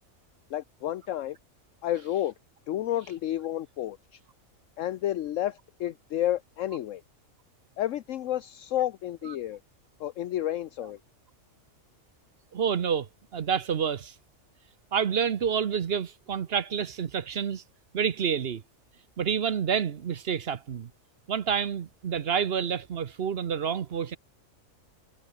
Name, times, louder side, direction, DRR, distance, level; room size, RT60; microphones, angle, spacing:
voice 1, 0.5-1.4 1.8-2.3 2.7-4.2 4.8-7.0 7.8-9.6 10.0-11.0, left 12 dB, 70° left, 1.0 m, -31 dB
voice 2, 12.5-14.1 14.9-17.6 17.9-18.6 19.2-20.9 21.3-24.2, right 7 dB, 50° right, 1.0 m, -28 dB
omnidirectional pair, 1.4 m